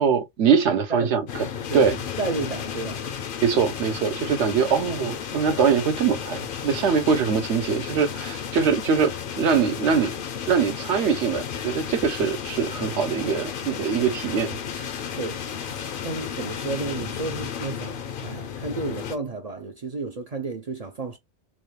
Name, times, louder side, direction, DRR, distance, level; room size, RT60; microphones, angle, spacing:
voice 1, 0.0-1.5 1.7-2.0 3.4-10.1 10.5-14.6, right 6 dB, 70° right, 1.1 m, -23 dB
voice 2, 0.7-1.2 1.7-3.1 15.2-21.2, right 3 dB, 50° right, 0.5 m, -32 dB
sound 1, 1.3-19.2, left 8 dB, 55° left, 0.7 m, -33 dB
3.7 x 2.3 x 3.2 m
omnidirectional pair, 1.2 m